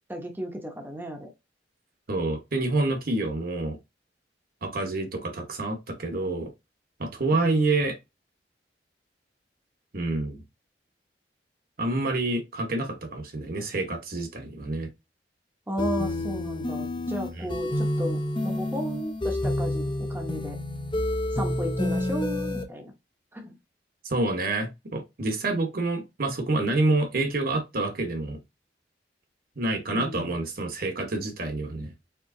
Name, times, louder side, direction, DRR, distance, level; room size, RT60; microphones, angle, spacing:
voice 1, 0.1-1.3 7.3-7.6 15.7-20.6 21.3-22.9 23.3-23.5 29.9-30.3, equal, 10° right, 0.9 m, -34 dB
voice 2, 2.1-3.8 4.6-6.5 7.0-8.0 9.9-10.4 11.8-14.9 17.4-17.5 24.0-28.4 29.6-31.9, right 2 dB, 55° right, 1.1 m, -27 dB
sound 1, 15.8-22.6, left 1 dB, 30° left, 0.8 m, -29 dB
4.5 x 3.7 x 2.6 m
head